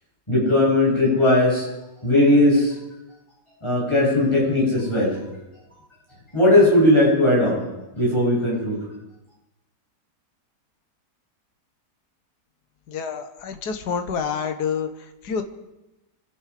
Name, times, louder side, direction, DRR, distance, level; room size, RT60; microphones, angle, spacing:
voice 1, 0.3-1.7 2.0-2.8 3.6-5.2 6.3-7.6 7.9-8.8, left 1 dB, 15° left, -6 dB, 8.1 m, -18 dB
voice 2, 12.9-15.4, left 6 dB, 65° left, 7 dB, 1.7 m, -28 dB
26.5 x 10.5 x 5.1 m, 0.98 s
omnidirectional pair, 1.9 m